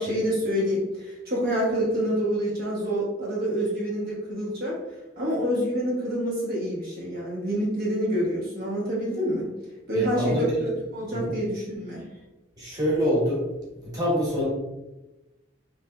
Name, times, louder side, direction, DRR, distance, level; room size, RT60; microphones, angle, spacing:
voice 1, 0.0-4.7 5.2-9.5 9.9-10.4 10.6-12.0, equal, 55° right, -6 dB, 0.9 m, -27 dB
voice 2, 9.9-10.6 11.1-11.3 12.6-13.4 13.8-14.5, equal, 20° right, -7 dB, 1.1 m, -25 dB
3.3 x 3.1 x 2.2 m, 1.0 s
head